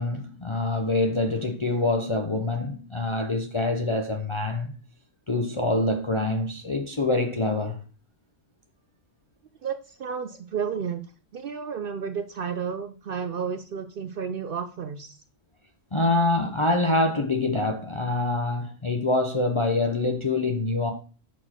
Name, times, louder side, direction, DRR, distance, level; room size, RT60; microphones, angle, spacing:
voice 1, 0.0-4.7 5.3-7.8 15.9-20.9, left 2 dB, 30° left, 0.6 m, -25 dB
voice 2, 9.6-11.0 11.3-15.2, right 7 dB, 65° right, 0.6 m, -32 dB
6.3 x 4.5 x 4.3 m
omnidirectional pair, 1.4 m